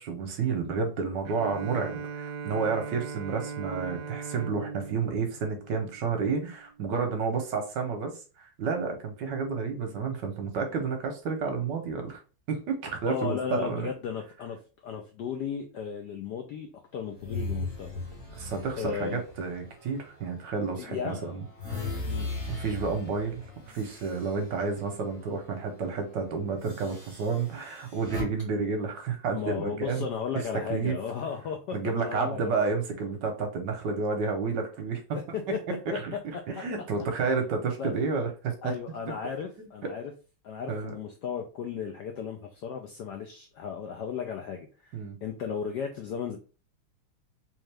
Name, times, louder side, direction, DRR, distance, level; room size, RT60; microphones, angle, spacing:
voice 1, 0.0-12.2 12.5-13.9 18.4-21.4 21.8-22.0 22.5-23.4 23.7-30.1 30.7-30.9 31.7-35.0 36.0-36.1 36.5-38.7 40.7-40.9 44.9-45.2, right 5 dB, 70° right, 5 dB, 1.2 m, -30 dB
Bowed string instrument, 1.3-6.5, right 5 dB, 85° right, 0.8 m, -39 dB
voice 2, 13.1-18.0 18.8-19.2 20.8-21.3 22.0-22.3 29.3-32.6 35.1-35.6 36.1-36.2 37.2-37.3 37.8-37.9 38.6-40.1 40.4-46.4, left 7 dB, 80° left, 4 dB, 0.9 m, -35 dB
sound 1, 17.2-20.5 20.9-25.3 25.6-25.8 26.6-28.2, left 3 dB, 20° left, 1.0 m, -38 dB
3.6 x 3.1 x 3.2 m, 0.35 s
omnidirectional pair, 2.3 m